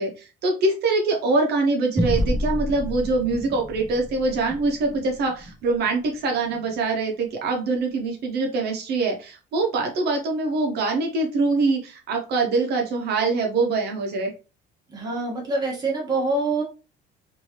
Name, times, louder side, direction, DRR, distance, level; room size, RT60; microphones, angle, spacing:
voice 1, 0.0-14.3, right 3 dB, 60° right, 2 dB, 0.7 m, -24 dB
sound 1, 2.0-6.8, equal, 5° right, 0.4 m, -30 dB
voice 2, 14.9-16.6, right 2 dB, 20° right, -2 dB, 1.2 m, -25 dB
3.1 x 2.6 x 2.8 m, 0.32 s
cardioid pair, 160°, 19 cm